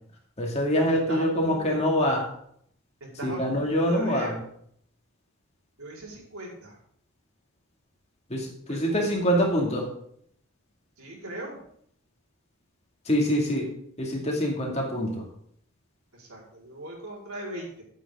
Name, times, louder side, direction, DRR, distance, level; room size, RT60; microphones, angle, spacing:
voice 1, 0.4-2.2 3.2-4.3 8.3-9.9 13.1-13.7 14.0-15.2, equal, 30° left, 0 dB, 2.3 m, -25 dB
voice 2, 1.1-1.8 3.0-4.4 5.8-6.8 8.7-9.1 11.0-11.6 16.1-17.8, right 1 dB, 85° right, -3 dB, 4.5 m, -39 dB
13.5 x 8.4 x 3.7 m, 0.67 s
head